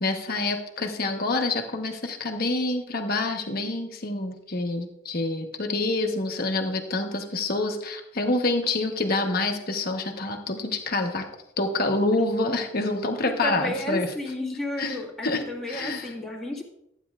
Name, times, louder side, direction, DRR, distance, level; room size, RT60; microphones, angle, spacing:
voice 1, 0.0-11.2 11.6-14.1 14.8-15.0 15.2-15.4 15.7-16.0, left 2 dB, 50° left, 3 dB, 1.1 m, -27 dB
voice 2, 13.3-16.6, left 1 dB, ahead, -4 dB, 1.7 m, -32 dB
14.0 x 9.3 x 2.5 m, 0.81 s
head